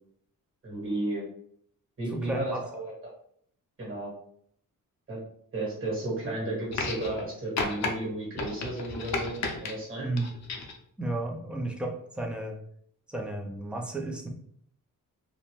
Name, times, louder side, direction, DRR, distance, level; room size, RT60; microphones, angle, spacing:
voice 1, 0.6-1.2 2.0-2.8 3.8-4.1 5.1-5.2 5.5-10.1, right 2 dB, 40° right, -4 dB, 1.5 m, -33 dB
voice 2, 2.1-2.6 10.0-10.3 11.0-12.6 13.1-14.3, right 2 dB, 5° right, 1 dB, 0.4 m, -33 dB
sound 1, 6.7-7.3 7.6-7.9 8.4-9.7 10.2-10.8 11.8-11.9, left 3 dB, 55° left, 0.5 m, -32 dB
2.5 x 2.1 x 3.0 m, 0.64 s
wide cardioid pair, 125°, 34 cm